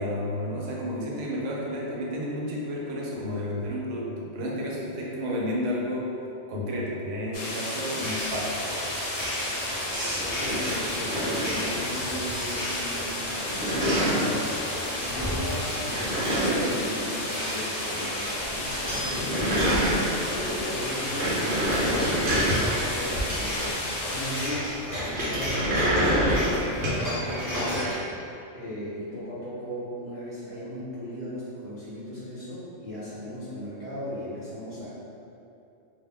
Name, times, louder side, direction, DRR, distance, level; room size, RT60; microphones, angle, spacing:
voice 1, 0.0-6.2 6.5-8.6, left 1 dB, 90° right, -3 dB, 0.9 m, -31 dB
sound 1, 7.3-24.5, left 1 dB, 65° left, 0.8 m, -33 dB
sound 2, 8.0-27.9, equal, 20° left, 0.7 m, -35 dB
sound 3, 9.9-12.0 12.3-12.9 13.2-14.4 15.6-17.8 18.0-18.1 18.4-18.5 18.7-20.5 20.8-23.9 25.0-27.1, equal, 60° right, 1.0 m, -27 dB
voice 2, 10.3-10.6 10.9-18.8 19.4-23.7 24.0-27.9 28.5-34.9, equal, 30° right, -13 dB, 0.8 m, -37 dB
2.3 x 2.1 x 3.6 m, 2.7 s
omnidirectional pair, 1.2 m